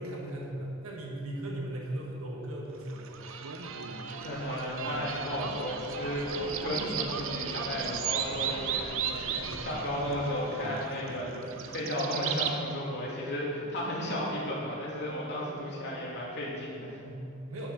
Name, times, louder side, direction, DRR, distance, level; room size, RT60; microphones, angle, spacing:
voice 1, 0.0-3.3 3.8-4.0 9.4-9.7 17.0-17.7, right 1 dB, 90° right, -2 dB, 1.5 m, -38 dB
sound 1, 2.9-12.5, right 7 dB, 70° right, 0.7 m, -35 dB
voice 2, 4.2-17.0, equal, 55° left, -5 dB, 2.7 m, -34 dB
9.6 x 6.5 x 6.7 m, 2.6 s
head